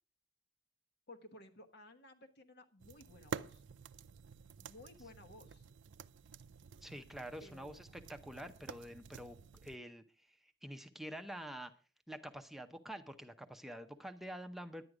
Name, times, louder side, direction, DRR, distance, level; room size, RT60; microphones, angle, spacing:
voice 1, 1.1-3.6 4.6-5.6 7.4-7.9, left 2 dB, 60° left, 7 dB, 1.2 m, -57 dB
sound 1, 2.8-9.8, right 6 dB, 80° right, 0.5 m, -50 dB
voice 2, 6.8-9.4 9.6-11.7 12.1-14.9, equal, ahead, 6 dB, 0.7 m, -47 dB
10.5 x 9.4 x 4.9 m, 0.39 s
head